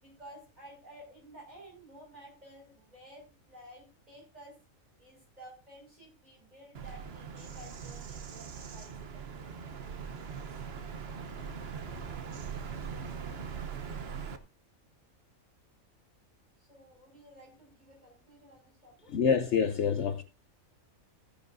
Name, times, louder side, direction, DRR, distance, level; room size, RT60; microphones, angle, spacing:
voice 1, 0.0-4.6 5.0-10.0 10.3-10.4 16.6-19.1, right 1 dB, 30° right, 5.6 m, -53 dB
Bird vocalization bird call bird song, 6.7-14.4, right 6 dB, 50° right, 1.1 m, -41 dB
voice 2, 19.1-20.2, left 6 dB, 60° left, 1.0 m, -27 dB
15.5 x 10.0 x 2.6 m
omnidirectional pair, 1.4 m